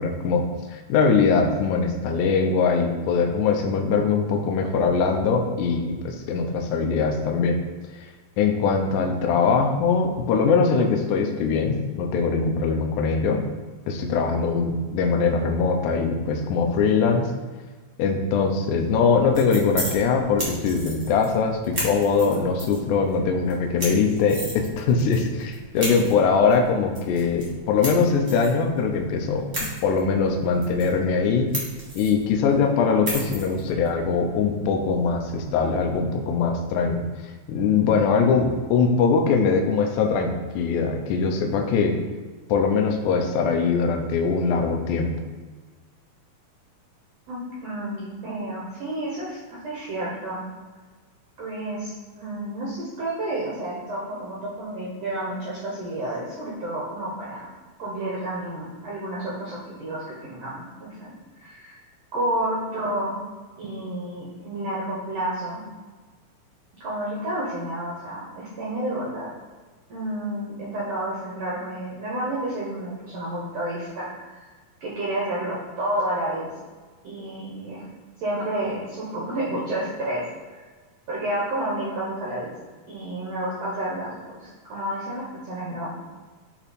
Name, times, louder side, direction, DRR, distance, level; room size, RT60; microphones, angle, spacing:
voice 1, 0.0-7.6 8.4-13.4 13.9-17.3 18.0-31.5 32.0-37.0 37.5-42.0 42.5-45.1, left 5 dB, 80° left, 3 dB, 1.8 m, -22 dB
sound 1, 19.0-35.9, right 1 dB, 45° right, 1.0 m, -36 dB
voice 2, 47.3-50.4 51.4-57.5 57.8-61.8 62.1-63.2 63.6-65.6 66.8-69.3 69.9-74.5 74.8-76.5 77.0-77.9 78.2-80.7 81.1-82.5 82.9-85.9, right 1 dB, 80° right, -6 dB, 1.5 m, -30 dB
8.7 x 3.0 x 4.2 m, 1.4 s
omnidirectional pair, 4.4 m